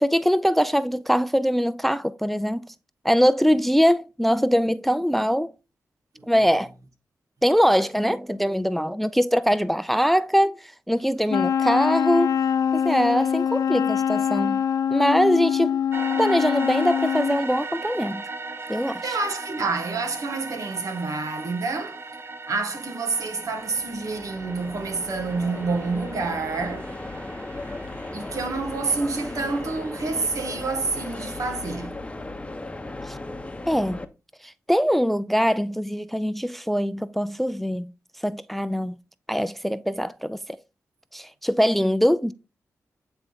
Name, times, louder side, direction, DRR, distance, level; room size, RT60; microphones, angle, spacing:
voice 1, 0.0-2.6 3.0-5.5 6.3-6.7 7.4-10.6 10.9-12.4 12.7-14.6 14.9-15.8 16.2-18.2 18.7-19.2 33.1-33.2 33.7-34.0 34.7-37.9 38.2-39.0 39.3-40.4 41.1-42.3, equal, 5° left, 0.4 m, -22 dB
Wind instrument woodwind instrument, 11.3-17.4, left 8 dB, 80° left, 0.5 m, -24 dB
sound 1, 15.9-31.9, right 3 dB, 45° right, 0.7 m, -39 dB
voice 2, 19.0-22.0 22.5-26.9 28.1-31.9, right 3 dB, 70° right, 1.5 m, -28 dB
sound 2, 23.2-34.0, left 2 dB, 20° left, 0.9 m, -36 dB
8.8 x 3.5 x 3.9 m
cardioid pair, 55°, 6 cm